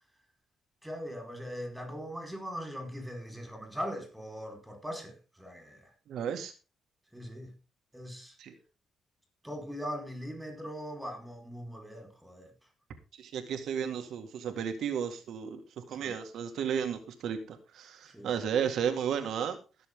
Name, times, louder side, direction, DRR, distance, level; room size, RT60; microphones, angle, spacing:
voice 1, 0.8-5.9 7.1-7.5 7.9-8.4 9.4-12.5 16.0-16.3 18.1-18.5, equal, 5° right, 4.4 m, -40 dB
voice 2, 6.1-6.5 8.4-8.6 13.1-19.6, right 8 dB, 75° right, 1.9 m, -33 dB
18.5 x 6.9 x 3.7 m
cardioid pair, 90°, 0 cm